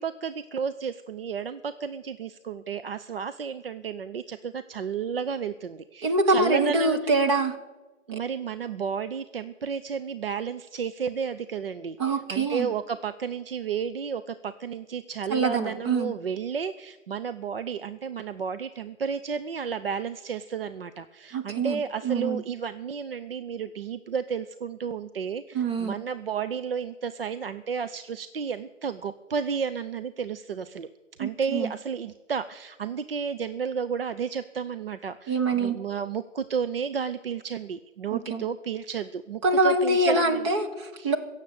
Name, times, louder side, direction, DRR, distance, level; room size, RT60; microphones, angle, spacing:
voice 1, 0.0-7.2 8.1-30.9 31.2-40.5 41.0-41.1, right 6 dB, 50° right, 11 dB, 0.6 m, -32 dB
voice 2, 6.0-7.6 8.1-8.2 12.0-12.7 15.3-16.1 21.3-21.8 22.0-22.4 25.5-25.9 31.2-31.7 35.3-35.8 38.1-38.4 39.4-41.2, right 2 dB, 20° right, 4 dB, 1.1 m, -24 dB
16.5 x 7.4 x 9.0 m, 1.2 s
figure-of-eight pair, 145°, 39 cm